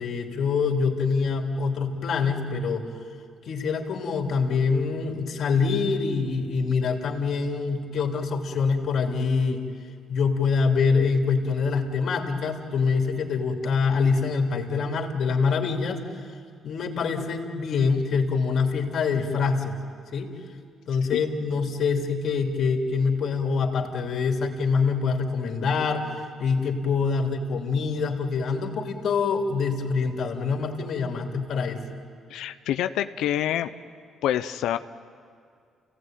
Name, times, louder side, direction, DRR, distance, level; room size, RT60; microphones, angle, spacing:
voice 1, 0.0-2.9 3.4-9.6 10.1-16.0 16.6-19.7 20.1-20.3 20.9-31.8, left 5 dB, 65° left, 2 dB, 3.2 m, -25 dB
voice 2, 32.3-33.7 34.2-34.8, left 11 dB, 85° left, 10 dB, 0.7 m, -26 dB
29.0 x 17.5 x 9.2 m, 2.2 s
cardioid pair, 90°, 0 cm